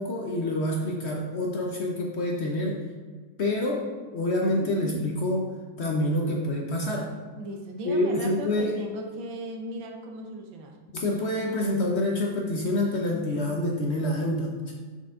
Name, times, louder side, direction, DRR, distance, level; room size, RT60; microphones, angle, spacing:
voice 1, 0.0-2.8 3.4-5.5 5.8-7.1 7.8-8.8 10.9-14.7, left 1 dB, 65° left, 0 dB, 0.6 m, -27 dB
voice 2, 7.4-10.7, right 1 dB, 80° right, 2 dB, 1.6 m, -37 dB
6.1 x 5.7 x 3.7 m, 1.5 s
omnidirectional pair, 2.1 m